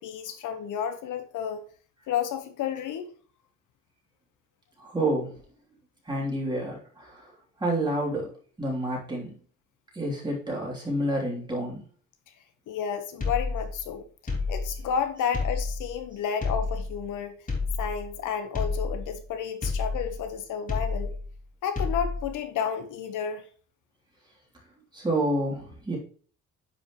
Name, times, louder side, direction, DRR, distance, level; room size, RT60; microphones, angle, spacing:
voice 1, 0.0-1.6 2.1-3.1 12.7-14.0 14.5-17.4 17.8-21.1 21.6-23.5, left 8 dB, 75° left, 1.2 m, -31 dB
voice 2, 4.8-5.4 6.0-7.3 7.6-8.3 8.6-9.3 9.9-11.8 24.9-26.0, right 1 dB, 15° right, 3.1 m, -29 dB
sound 1, 13.2-13.9 14.3-14.9 15.3-16.0 16.4-17.1 17.5-18.2 18.5-19.3 19.6-20.3 20.7-21.4 21.8-22.4, left 3 dB, 25° left, 2.6 m, -30 dB
10.0 x 5.2 x 3.1 m
cardioid pair, 135°, 31 cm